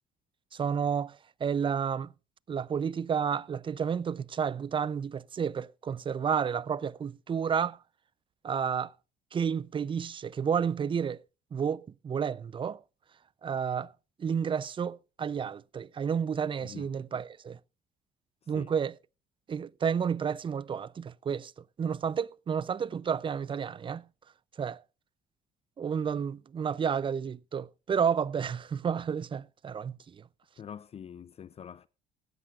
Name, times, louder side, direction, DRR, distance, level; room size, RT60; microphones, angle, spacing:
voice 1, 0.5-2.1 2.5-7.8 8.4-8.9 9.3-11.2 11.5-12.8 13.4-13.9 14.2-17.6 18.5-18.9 19.5-21.5 21.8-24.0 24.6-24.8 25.8-30.2, right 7 dB, 30° right, 0.5 m, -31 dB
voice 2, 16.6-16.9 18.4-18.7 30.6-31.9, left 8 dB, 35° left, 0.5 m, -45 dB
17.0 x 13.0 x 2.4 m
cardioid pair, 110°, 17 cm